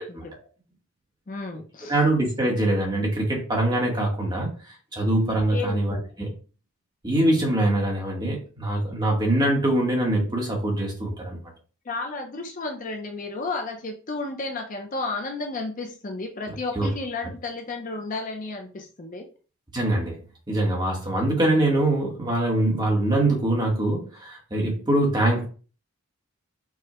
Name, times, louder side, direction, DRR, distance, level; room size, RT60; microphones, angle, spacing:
voice 1, 1.3-2.0 5.5-6.1 11.9-19.3, left 3 dB, 35° left, 3 dB, 0.5 m, -32 dB
voice 2, 1.9-6.3 7.0-11.4 16.8-16.9 19.7-20.2 20.5-25.5, right 1 dB, 20° right, -1 dB, 0.9 m, -23 dB
4.7 x 2.1 x 2.9 m, 0.37 s
head